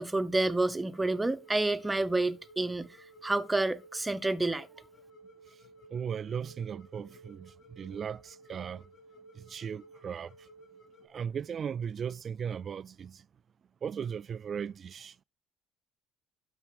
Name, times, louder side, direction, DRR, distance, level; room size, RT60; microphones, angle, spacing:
voice 1, 0.0-3.0 3.2-4.7, right 2 dB, 15° right, 0.9 m, -29 dB
sound 1, 0.9-11.1, right 2 dB, 65° left, 2.7 m, -56 dB
voice 2, 5.9-8.8 9.3-10.3 11.1-13.2 13.8-15.1, right 7 dB, 45° right, 0.4 m, -37 dB
12.0 x 4.6 x 5.1 m
supercardioid pair, 75°, 0 cm